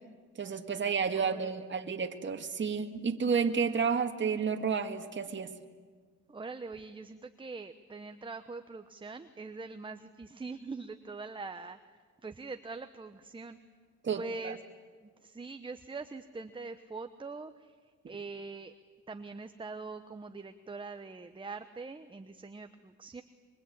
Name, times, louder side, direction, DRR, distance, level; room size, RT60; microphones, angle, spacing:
voice 1, 0.4-5.5 14.0-14.5, right 6 dB, 40° right, 6 dB, 1.9 m, -31 dB
voice 2, 1.1-1.5 6.3-13.6 14.1-14.6 15.2-17.8 18.1-18.7 19.1-23.2, right 3 dB, 15° right, 8 dB, 1.0 m, -43 dB
25.0 x 24.0 x 8.8 m, 1.5 s
cardioid pair, 90°, 30 cm